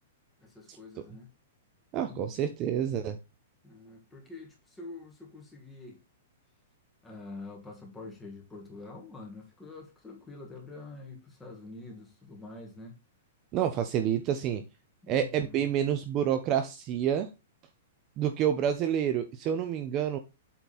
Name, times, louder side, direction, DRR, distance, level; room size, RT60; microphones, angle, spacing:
voice 1, 0.4-1.3 1.9-2.5 3.6-6.0 7.0-13.0 15.0-15.7, left 3 dB, 5° left, 1.9 m, -46 dB
voice 2, 1.9-3.2 13.5-14.6 15.1-17.3 18.2-20.2, right 9 dB, 25° right, 0.6 m, -28 dB
8.2 x 3.9 x 4.2 m
hypercardioid pair, 165°, 0 cm